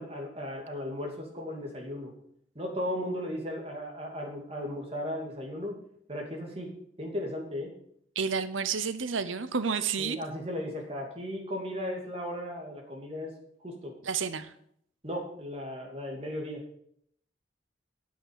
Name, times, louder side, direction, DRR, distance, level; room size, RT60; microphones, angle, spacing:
voice 1, 0.0-2.1 2.5-5.8 6.1-6.7 7.0-7.7 10.0-13.3 13.6-13.9 15.0-16.6, left 1 dB, 30° right, 0 dB, 2.7 m, -36 dB
voice 2, 8.2-10.2 14.0-14.5, right 6 dB, 90° right, 13 dB, 0.8 m, -30 dB
8.6 x 8.5 x 7.5 m, 0.68 s
head